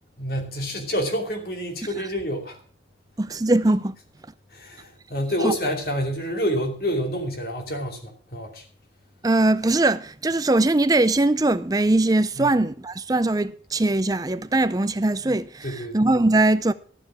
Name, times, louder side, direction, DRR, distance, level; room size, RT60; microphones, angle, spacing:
voice 1, 0.2-2.6 4.5-8.6 12.4-12.6 15.6-16.0, equal, 55° left, 2.6 m, -28 dB
voice 2, 3.2-3.9 5.4-5.5 9.2-16.7, right 2 dB, 20° right, 0.5 m, -21 dB
13.5 x 7.4 x 6.3 m
head